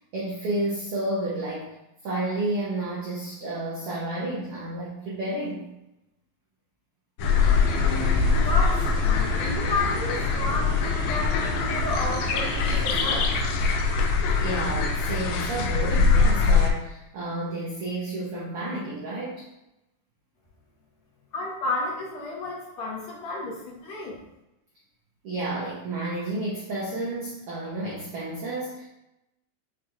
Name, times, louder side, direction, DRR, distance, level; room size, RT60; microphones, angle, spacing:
voice 1, 0.1-1.7 2.0-5.7 14.4-19.5 25.2-28.9, right 2 dB, 85° right, -6 dB, 1.2 m, -31 dB
sound 1, 7.2-16.7, left 4 dB, 90° left, 1.6 m, -23 dB
sound 2, 7.2-13.9, equal, 40° right, 1.3 m, -37 dB
voice 2, 8.4-13.3 21.3-24.2, left 3 dB, 65° left, -4 dB, 1.9 m, -32 dB
7.0 x 3.0 x 2.4 m, 0.91 s
omnidirectional pair, 3.7 m